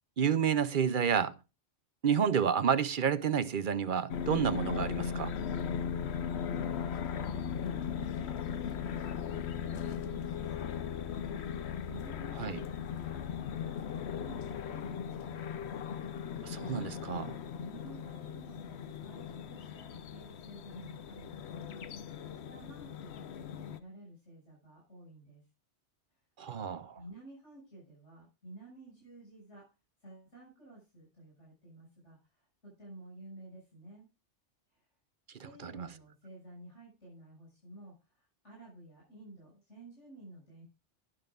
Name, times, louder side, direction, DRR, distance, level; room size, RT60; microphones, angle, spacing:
voice 1, 0.2-1.3 2.0-5.3 12.4-12.6 16.4-17.3 26.4-27.0 35.6-35.9, right 7 dB, 50° right, 0.8 m, -30 dB
sound 1, 4.1-23.8, left 7 dB, 70° left, 1.0 m, -38 dB
voice 2, 6.1-15.7 17.6-25.4 26.1-26.2 27.0-29.7 30.0-34.1 34.7-34.9 35.4-40.6, right 2 dB, 85° left, 7.0 m, -53 dB
12.0 x 11.0 x 2.4 m
omnidirectional pair, 1.2 m